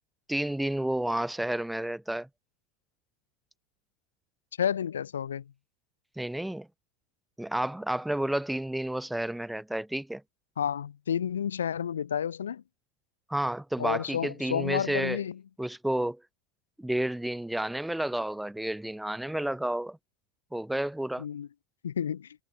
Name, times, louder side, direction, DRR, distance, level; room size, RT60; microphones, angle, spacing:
voice 1, 0.3-2.3 6.2-6.7 7.4-10.2 13.3-15.2 15.6-16.2 16.8-20.0 20.5-21.3, right 1 dB, 5° right, 2.0 m, -31 dB
voice 2, 4.6-5.4 10.6-12.6 13.8-15.4 21.2-21.5 21.8-22.3, left 8 dB, 85° left, 3.9 m, -30 dB
hypercardioid pair, 80°, 0 cm